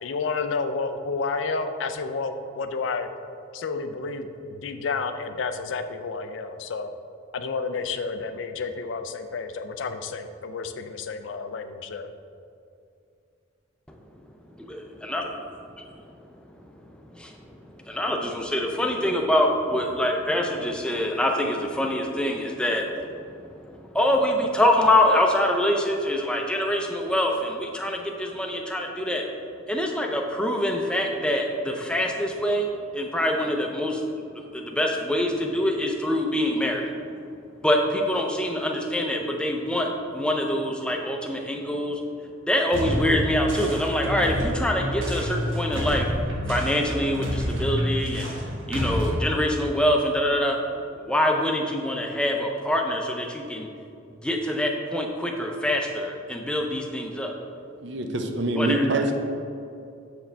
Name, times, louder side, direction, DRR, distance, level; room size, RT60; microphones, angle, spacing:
voice 1, 0.0-3.1 3.5-6.9 7.3-12.1, left 4 dB, 75° left, 8 dB, 0.4 m, -30 dB
voice 2, 14.6-15.3 17.1-29.3 29.7-32.7 32.9-34.0 34.5-36.9 37.6-42.0 42.5-46.1 46.5-48.3 48.7-50.6 50.9-53.7 54.2-57.3 58.6-58.9, left 1 dB, 5° left, 1 dB, 0.5 m, -25 dB
sound 1, 42.7-49.2, equal, 90° right, 1.2 m, -28 dB
voice 3, 57.8-59.1, right 2 dB, 65° right, 5 dB, 0.6 m, -25 dB
7.2 x 4.8 x 3.3 m, 2.5 s
head